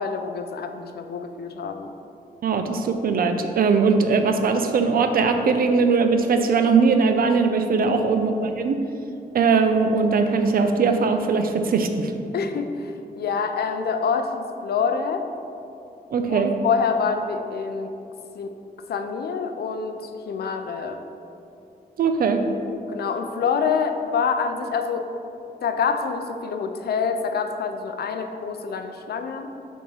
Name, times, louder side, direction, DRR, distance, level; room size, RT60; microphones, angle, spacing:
voice 1, 0.0-1.9 7.9-8.2 12.3-15.3 16.3-18.0 18.3-18.5 18.9-21.0 22.9-25.1 25.6-29.5, left 5 dB, 80° left, 7 dB, 0.6 m, -26 dB
voice 2, 2.4-8.8 9.3-12.1 16.1-16.5 22.0-22.4, right 4 dB, 65° right, 6 dB, 0.6 m, -20 dB
8.4 x 3.7 x 5.5 m, 2.7 s
wide cardioid pair, 180°, 16 cm